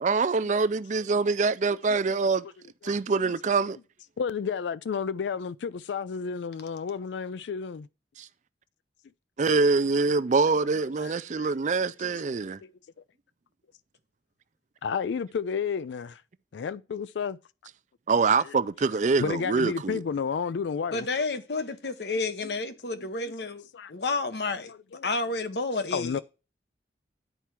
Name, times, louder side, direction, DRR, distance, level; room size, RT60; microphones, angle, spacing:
voice 1, 0.0-2.4 2.8-3.8 8.2-8.3 9.4-12.6 18.1-20.0, right 4 dB, 40° right, 0.4 m, -25 dB
voice 2, 4.2-7.9 11.0-11.5 12.0-12.1 14.8-16.2 16.5-17.4 18.5-18.6 18.9-21.1 23.0-23.1 23.7-23.9 24.6-25.1 25.9-26.2, left 6 dB, 80° left, 0.4 m, -32 dB
voice 3, 20.9-24.7 25.0-26.2, left 3 dB, 65° left, 0.9 m, -30 dB
10.0 x 4.6 x 5.8 m
head